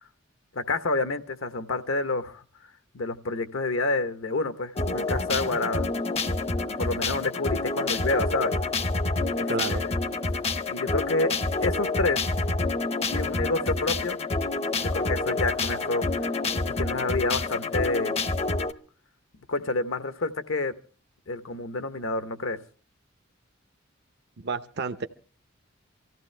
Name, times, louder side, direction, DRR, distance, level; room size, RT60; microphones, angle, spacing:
voice 1, 0.5-2.4 2.9-5.9 6.8-8.5 9.4-9.9 10.7-11.3 11.6-12.2 13.1-14.2 14.8-16.3 16.6-18.1 19.5-20.7 21.3-22.6, left 3 dB, 75° left, 11 dB, 0.9 m, -28 dB
sound 1, 4.8-18.7, left 3 dB, 30° left, 0.6 m, -28 dB
voice 2, 9.5-9.8 24.4-25.1, right 4 dB, 55° right, 8 dB, 0.7 m, -30 dB
24.5 x 15.0 x 3.3 m, 0.38 s
head